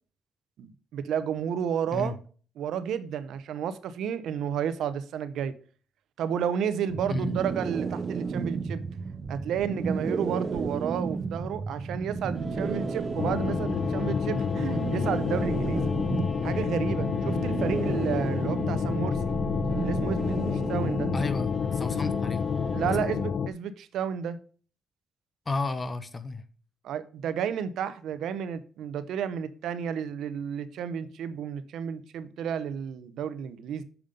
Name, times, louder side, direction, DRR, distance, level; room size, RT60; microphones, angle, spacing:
voice 1, 0.6-2.1 2.6-5.5 6.2-8.8 9.3-15.8 16.4-19.4 19.8-21.1 22.0-22.2 22.7-24.4 26.8-33.8, right 8 dB, 75° right, 0.7 m, -32 dB
sound 1, 6.9-21.5, right 4 dB, 40° right, 0.7 m, -33 dB
sound 2, 12.3-23.0, equal, ahead, 2.6 m, -40 dB
sound 3, 13.2-23.5, left 6 dB, 55° left, 0.4 m, -29 dB
voice 2, 21.1-22.4 22.8-23.1 25.5-26.4, left 3 dB, 25° left, 0.7 m, -33 dB
7.2 x 5.2 x 5.2 m
cardioid pair, 90°, 0 cm